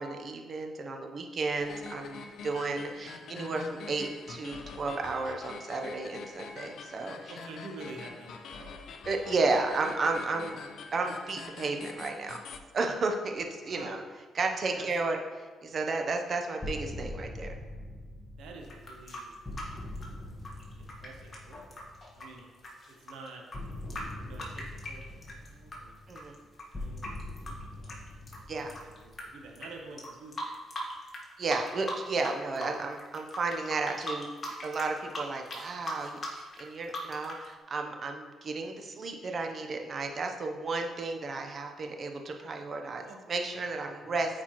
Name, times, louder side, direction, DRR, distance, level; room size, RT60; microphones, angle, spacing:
voice 1, 0.0-7.3 9.1-10.6 10.9-12.4 12.7-14.0 14.3-17.5 26.1-26.3 28.5-28.7 31.4-44.4, right 3 dB, 45° right, 4 dB, 0.8 m, -33 dB
sound 1, 1.6-12.6, left 4 dB, 65° left, 0.5 m, -45 dB
voice 2, 7.3-8.8 10.5-10.6 13.6-13.9 14.7-14.9 18.4-19.8 20.8-21.8 22.1-22.5 22.9-23.4 24.2-27.3 27.8-30.5 43.0-43.2 43.5-43.6 44.2-44.3, right 3 dB, 80° right, 1 dB, 0.8 m, -49 dB
sound 2, 16.6-22.4 23.5-29.8, left 1 dB, 15° left, 1.4 m, -43 dB
sound 3, 18.6-25.8 26.1-29.2 29.5-29.7 30.0-31.2 31.5-32.3 32.6-37.4, left 1 dB, 35° left, 1.5 m, -40 dB
8.6 x 4.4 x 3.0 m, 1.5 s
cardioid pair, 90°, 0 cm